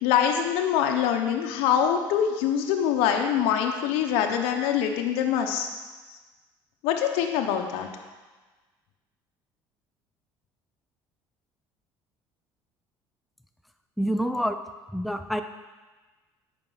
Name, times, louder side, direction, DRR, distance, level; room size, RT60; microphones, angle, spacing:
voice 1, 0.0-5.7 6.8-7.9, left 9 dB, 85° left, 4 dB, 0.9 m, -24 dB
voice 2, 14.0-14.6 14.9-15.4, equal, ahead, 7 dB, 0.5 m, -27 dB
8.9 x 5.3 x 5.6 m, 1.3 s
supercardioid pair, 90°, 10 cm